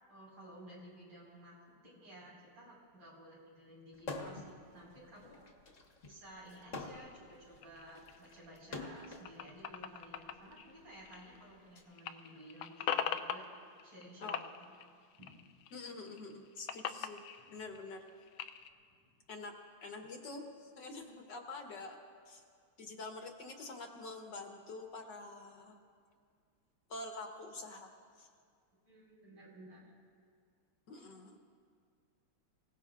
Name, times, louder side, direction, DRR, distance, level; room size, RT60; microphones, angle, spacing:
voice 1, 0.1-5.5 6.0-13.4 13.8-14.7 15.2-15.3 17.4-17.6 18.9-19.1 28.9-29.9 31.0-31.1, equal, 80° right, -5 dB, 5.6 m, -55 dB
sound 1, 4.0-4.5 4.9-9.3 10.2-11.8, left 2 dB, 40° left, 1.4 m, -46 dB
sound 2, 6.9-11.7 11.9-14.0 14.3-15.7 16.1-18.7, left 9 dB, 80° left, 1.4 m, -42 dB
voice 2, 15.7-17.2 17.5-18.0 19.3-22.0 22.3-22.4 22.8-25.8 26.9-27.9 28.2-28.3 30.9-31.4, left 3 dB, 60° left, 3 dB, 1.6 m, -46 dB
25.0 x 17.0 x 2.5 m, 2.1 s
omnidirectional pair, 2.4 m